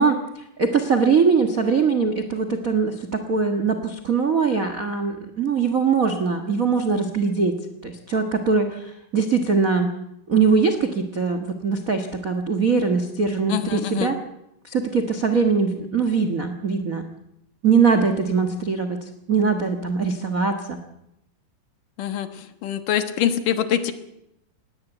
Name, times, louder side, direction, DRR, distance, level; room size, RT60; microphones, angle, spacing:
voice 1, 0.0-7.6 7.8-9.9 10.3-14.2 14.6-17.1 17.6-20.8, right 5 dB, 75° right, 7 dB, 0.7 m, -22 dB
voice 2, 13.5-14.1 22.0-23.9, left 10 dB, 70° left, 9 dB, 2.8 m, -24 dB
19.5 x 17.5 x 9.0 m, 0.80 s
omnidirectional pair, 4.2 m